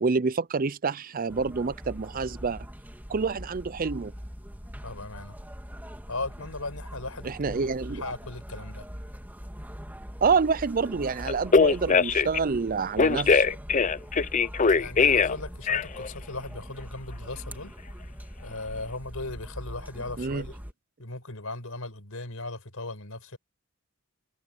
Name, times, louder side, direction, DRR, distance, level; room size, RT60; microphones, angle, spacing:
voice 1, 0.0-2.7 3.1-4.1 7.2-8.0 10.2-13.5 20.2-20.5, right 4 dB, 40° right, 0.5 m, -27 dB
sound 1, 1.3-20.7, equal, 10° right, 2.8 m, -42 dB
voice 2, 4.8-5.4 6.1-8.9 14.7-17.7 18.4-20.6 21.0-23.4, left 2 dB, 70° left, 5.3 m, -37 dB
Telephone, 11.3-12.4 13.0-15.4 15.7-16.1, left 5 dB, 35° left, 0.5 m, -21 dB
head